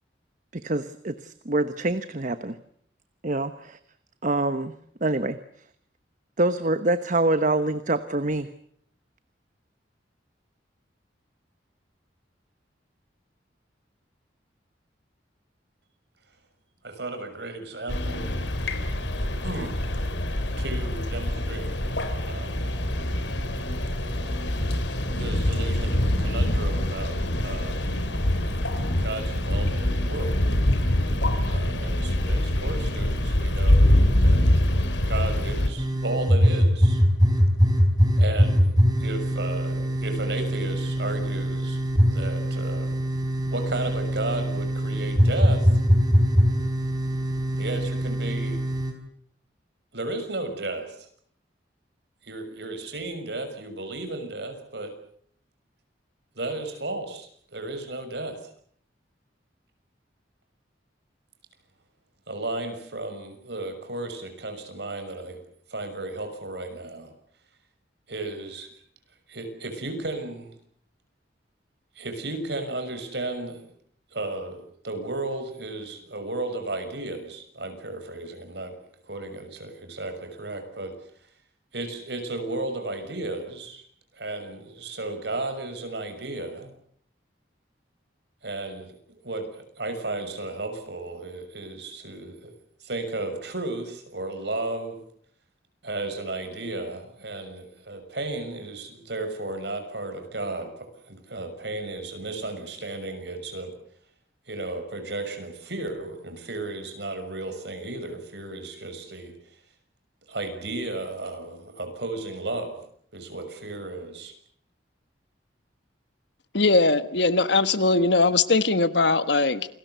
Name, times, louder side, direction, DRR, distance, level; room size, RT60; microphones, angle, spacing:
voice 1, 0.5-2.6 3.2-3.8 4.2-4.7 5.0-5.7 6.4-8.5, right 2 dB, 45° right, 11 dB, 1.1 m, -25 dB
voice 2, 16.8-18.3 19.2-19.7 20.6-21.7 22.3-22.7 25.2-28.0 29.0-30.5 31.5-37.0 38.2-38.7 39.0-41.8 42.1-42.9 43.5-45.8 47.6-48.7 49.9-51.1 52.2-54.9 56.3-58.4 62.3-65.4 65.7-67.1 68.1-68.7 69.3-70.6 71.9-73.6 74.1-78.8 79.0-80.9 81.7-83.8 84.1-86.7 88.4-92.5 92.8-95.0 95.8-103.7 104.5-109.3 110.3-112.8 113.1-114.3, right 2 dB, 65° right, 7 dB, 6.4 m, -34 dB
sound 1, 17.9-35.7, left 1 dB, 85° left, 3.9 m, -24 dB
sound 2, 35.8-48.9, equal, 20° right, 4.7 m, -22 dB
voice 3, 116.5-119.7, left 3 dB, 70° left, 13 dB, 1.5 m, -20 dB
28.5 x 20.0 x 8.2 m, 0.64 s
head